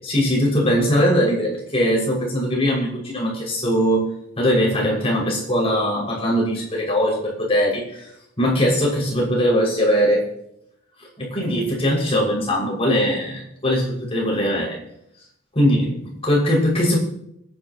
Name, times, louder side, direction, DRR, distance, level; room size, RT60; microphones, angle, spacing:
voice 1, 0.0-4.1 4.4-8.1 8.4-10.2 11.2-14.8 15.5-17.0, equal, 30° left, -4 dB, 6.3 m, -20 dB
28.0 x 10.5 x 3.1 m, 0.77 s
head